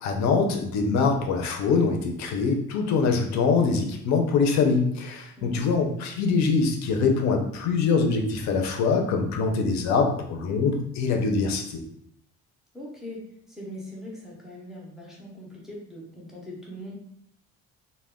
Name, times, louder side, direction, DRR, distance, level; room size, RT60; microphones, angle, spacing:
voice 1, 0.0-11.8, left 4 dB, 70° left, 3 dB, 0.5 m, -24 dB
voice 2, 5.4-5.7 12.7-16.9, left 1 dB, ahead, -5 dB, 0.4 m, -41 dB
2.2 x 2.1 x 3.5 m, 0.72 s
cardioid pair, 180°, 29 cm